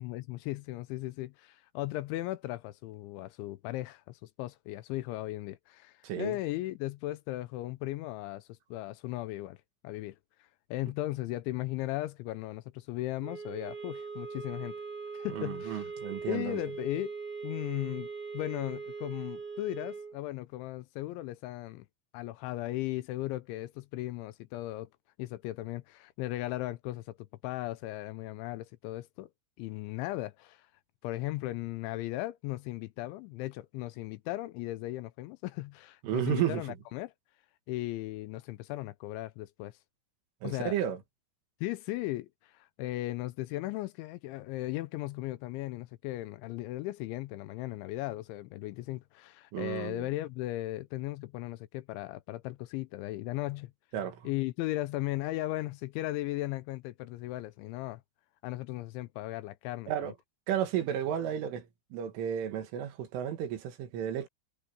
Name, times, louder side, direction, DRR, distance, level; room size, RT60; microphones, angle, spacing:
voice 1, 0.0-9.6 9.8-10.2 10.7-14.8 15.1-15.9 16.3-17.1 17.4-18.1 18.3-21.9 22.1-24.9 25.2-29.3 29.6-30.7 31.0-37.1 37.7-39.8 40.4-40.8 41.6-53.7 54.2-58.0 58.4-60.1, left 17 dB, 80° left, 3.0 m, -37 dB
voice 2, 6.0-6.4 15.3-16.6 36.0-36.6 40.4-41.0 49.5-50.1 53.9-54.3 59.9-60.1 60.5-64.3, right 10 dB, 80° right, 4.5 m, -33 dB
sound 1, 13.2-20.2, right 4 dB, 25° right, 3.2 m, -41 dB
omnidirectional pair, 5.7 m